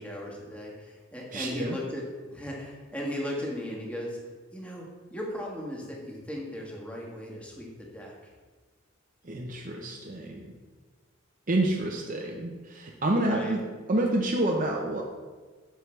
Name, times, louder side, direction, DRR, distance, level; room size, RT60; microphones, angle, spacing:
voice 1, 0.0-2.0 2.3-4.2 4.5-8.1 13.2-13.6, left 1 dB, 5° left, -2 dB, 1.6 m, -37 dB
voice 2, 1.3-1.8 9.2-10.5 11.5-13.6 13.9-15.0, right 1 dB, 40° right, 0 dB, 0.8 m, -28 dB
9.4 x 7.6 x 3.3 m, 1.4 s
head